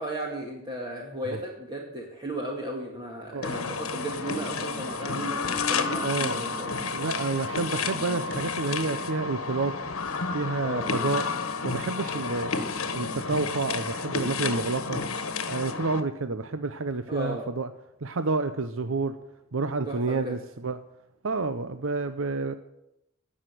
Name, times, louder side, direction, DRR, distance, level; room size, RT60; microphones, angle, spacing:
voice 1, 0.0-6.8 10.6-10.9 17.1-17.4 19.9-20.3, right 1 dB, 20° right, -2 dB, 2.1 m, -35 dB
sound 1, 3.4-16.0, left 4 dB, 80° left, 1.4 m, -31 dB
voice 2, 6.0-6.4 6.9-9.7 10.3-11.2 11.6-12.5 12.9-15.0 15.5-17.7 18.0-19.1 19.5-20.8 21.2-22.6, right 3 dB, 65° right, 10 dB, 0.8 m, -29 dB
17.0 x 6.5 x 9.2 m, 0.82 s
head